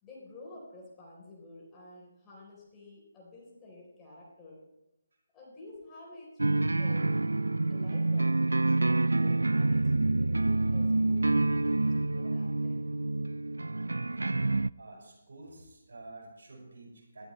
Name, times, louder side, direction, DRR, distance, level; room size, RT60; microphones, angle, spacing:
voice 1, 0.0-4.6 5.3-6.3 6.7-7.1 7.7-8.4 8.8-12.9, left 2 dB, 15° left, -4 dB, 3.6 m, -51 dB
sound 1, 6.4-14.7, right 2 dB, 80° right, 0.3 m, -27 dB
voice 2, 14.8-17.3, right 2 dB, 65° right, -1 dB, 5.7 m, -49 dB
19.5 x 12.0 x 3.2 m, 0.93 s
figure-of-eight pair, 150°, 0 cm